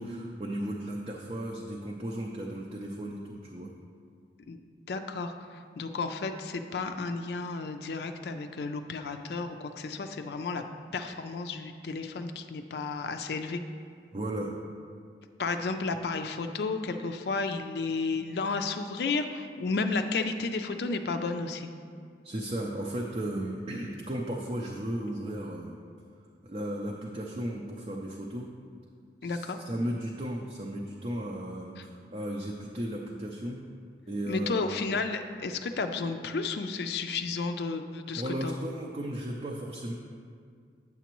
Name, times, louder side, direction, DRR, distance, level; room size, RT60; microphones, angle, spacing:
voice 1, 0.0-3.7 14.1-14.5 22.2-25.8 26.4-28.5 29.2-33.6 34.1-34.7 38.1-39.9, right 1 dB, 35° right, -1 dB, 0.5 m, -35 dB
voice 2, 4.9-5.3 5.8-10.6 10.9-13.6 15.4-21.7 29.2-29.6 34.3-38.5, left 4 dB, 65° left, 7 dB, 0.4 m, -32 dB
9.1 x 7.0 x 3.0 m, 2.2 s
head